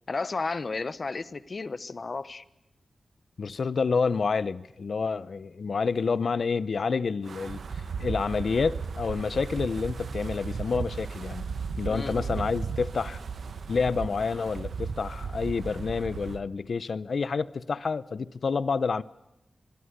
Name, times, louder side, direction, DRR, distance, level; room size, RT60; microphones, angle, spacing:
voice 1, 0.1-2.4 11.9-12.4, left 3 dB, 45° left, 1.1 m, -33 dB
voice 2, 3.4-11.5 11.8-13.2 13.7-19.0, left 5 dB, 65° left, 0.8 m, -28 dB
Wind, 7.3-16.4, right 5 dB, 85° right, 1.5 m, -35 dB
24.5 x 22.5 x 6.8 m
wide cardioid pair, 130°, 0 cm